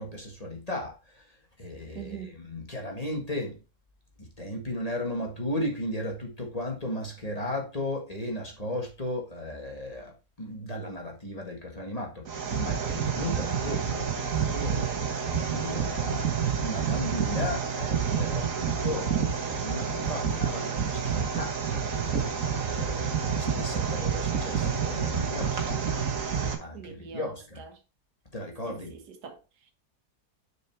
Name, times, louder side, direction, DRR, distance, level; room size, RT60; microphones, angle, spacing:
voice 1, 0.0-3.6 4.2-25.8 26.6-27.6 28.3-29.0, left 1 dB, 25° left, 1.6 m, -36 dB
voice 2, 1.9-2.4 13.2-13.5 26.7-27.8 28.6-29.7, right 8 dB, 85° right, 1.7 m, -43 dB
sound 1, 12.3-26.6, right 6 dB, 55° right, 1.6 m, -29 dB
6.6 x 4.7 x 4.3 m
omnidirectional pair, 1.7 m